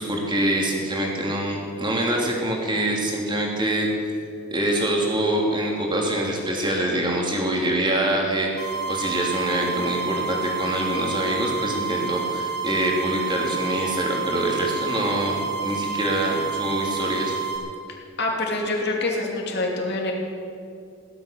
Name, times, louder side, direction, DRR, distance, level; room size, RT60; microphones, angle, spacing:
voice 1, 0.0-4.1 4.5-8.5 8.9-17.4, right 1 dB, 20° right, -1 dB, 2.9 m, -25 dB
sound 1, 8.6-17.6, right 6 dB, 75° left, 3.9 m, -29 dB
voice 2, 18.2-20.1, left 2 dB, 50° left, 0 dB, 2.9 m, -25 dB
16.5 x 12.5 x 6.8 m, 2.4 s
head